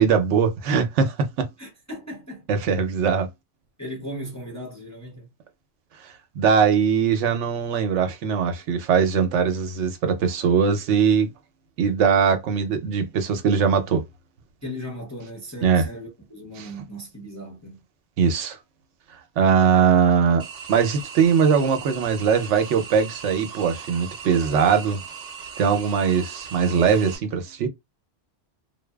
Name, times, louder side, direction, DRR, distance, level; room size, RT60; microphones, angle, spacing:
voice 1, 0.0-1.5 2.5-3.3 6.4-11.3 11.8-14.0 15.6-15.9 16.6-16.7 18.2-18.6 19.4-20.4 20.7-25.0 25.6-27.7, right 6 dB, 80° right, 0.9 m, -21 dB
voice 2, 1.6-2.5 3.8-5.3 14.6-17.8, equal, 20° left, 0.5 m, -37 dB
sound 1, 20.4-27.2, right 6 dB, 60° right, 0.4 m, -39 dB
2.6 x 2.1 x 2.2 m
omnidirectional pair, 1.2 m